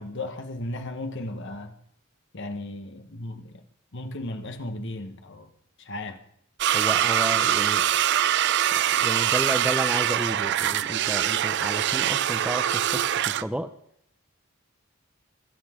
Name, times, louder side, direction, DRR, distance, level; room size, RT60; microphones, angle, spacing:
voice 1, 0.0-1.8 2.3-3.6 3.9-5.5 5.8-6.2, left 1 dB, 60° left, 1.3 m, -35 dB
sound 1, 6.6-13.4, right 11 dB, 55° right, 0.4 m, -23 dB
voice 2, 6.7-8.0 8.7-13.7, right 1 dB, 5° right, 0.6 m, -32 dB
26.5 x 9.2 x 3.7 m
head